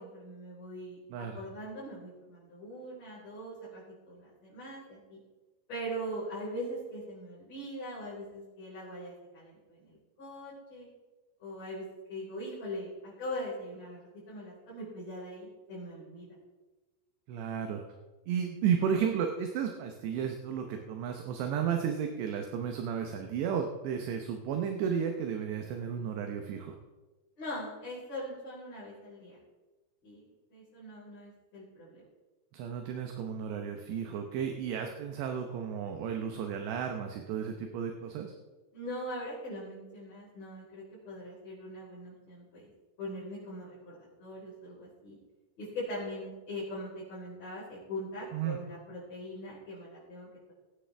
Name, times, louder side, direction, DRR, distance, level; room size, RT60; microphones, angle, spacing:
voice 1, 0.0-5.2 5.7-10.9 11.4-16.3 27.4-29.4 30.0-30.2 30.5-32.0 38.7-42.7 43.0-45.2 45.6-50.5, equal, 35° left, -10 dB, 5.2 m, -41 dB
voice 2, 1.1-1.4 17.3-17.8 18.3-26.8 32.5-38.3 48.3-48.6, right 7 dB, 75° right, 4 dB, 2.7 m, -33 dB
21.0 x 9.1 x 3.4 m, 1.2 s
omnidirectional pair, 5.6 m